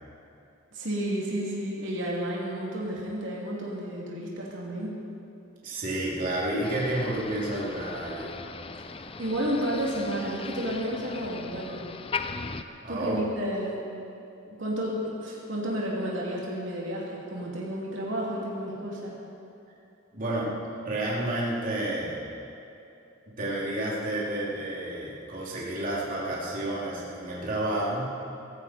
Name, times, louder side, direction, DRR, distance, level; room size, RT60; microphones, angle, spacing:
voice 1, 0.7-4.9 9.2-11.8 12.9-13.8 14.5-19.1, equal, 70° right, -4 dB, 2.9 m, -31 dB
voice 2, 5.6-8.3 12.8-13.2 20.1-20.5 20.8-22.2 23.3-28.1, right 1 dB, 40° right, -6 dB, 3.0 m, -30 dB
Motor vehicle (road), 6.6-12.6, left 4 dB, 30° left, 0.5 m, -38 dB
19.0 x 14.5 x 4.4 m, 2.8 s
head